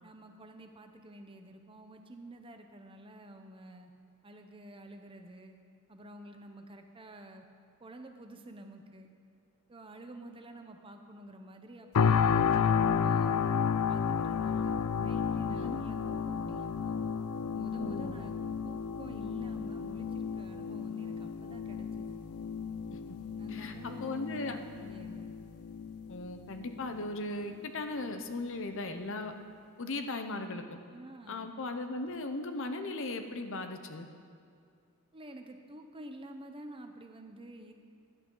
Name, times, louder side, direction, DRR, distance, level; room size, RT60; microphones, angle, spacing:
voice 1, 0.0-3.9 4.2-5.6 5.9-7.4 7.8-9.1 9.7-13.4 13.9-17.0 17.5-18.3 18.6-22.2 23.4-25.3 30.9-31.5 35.1-37.7, right 1 dB, 25° right, 5 dB, 0.8 m, -49 dB
sound 1, 11.9-27.0 27.4-27.6, left 6 dB, 80° left, 0.4 m, -32 dB
voice 2, 15.4-15.8 17.8-18.2 22.9-23.0 23.5-24.6 26.1-29.3 29.8-30.8 31.3-34.1, left 2 dB, 60° left, 7 dB, 0.8 m, -37 dB
16.5 x 11.0 x 3.9 m, 2.4 s
head